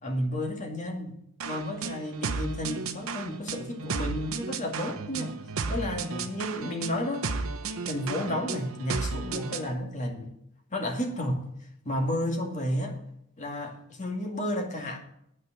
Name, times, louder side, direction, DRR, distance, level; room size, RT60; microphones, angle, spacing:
voice 1, 0.0-1.2 1.4-5.3 5.7-7.3 7.9-10.3 10.7-13.0 13.4-15.0, left 1 dB, 35° left, 2.2 m, -32 dB
sound 1, 1.4-9.7, right 4 dB, 70° right, 1.0 m, -34 dB
9.4 x 6.4 x 8.5 m
head